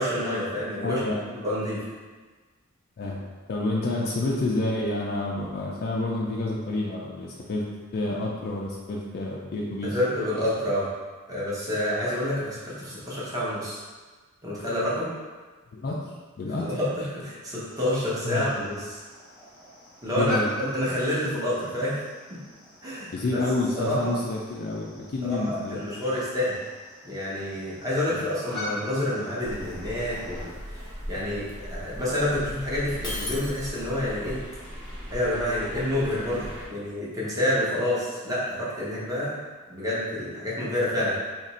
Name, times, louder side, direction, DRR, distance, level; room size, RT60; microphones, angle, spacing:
voice 1, 0.0-1.0 1.3-1.8 9.8-10.9 11.3-13.8 14.4-15.1 16.6-19.0 20.0-22.0 22.8-23.4 23.7-24.2 25.2-26.6 27.0-34.4 35.1-39.4 39.7-41.2, left 1 dB, 15° right, -8 dB, 0.8 m, -28 dB
voice 2, 0.8-1.2 3.0-3.2 3.5-7.6 7.9-10.0 15.7-16.0 16.4-16.6 18.2-18.7 20.2-20.5 23.1-25.9 28.1-28.2, left 2 dB, 45° left, -3 dB, 0.4 m, -29 dB
sound 1, 17.7-30.5, left 1 dB, ahead, 1.2 m, -42 dB
sound 2, 29.4-36.7, equal, 60° right, 0.9 m, -39 dB
Shatter, 33.0-34.1, left 2 dB, 20° left, 0.8 m, -35 dB
2.9 x 2.5 x 4.1 m, 1.4 s
head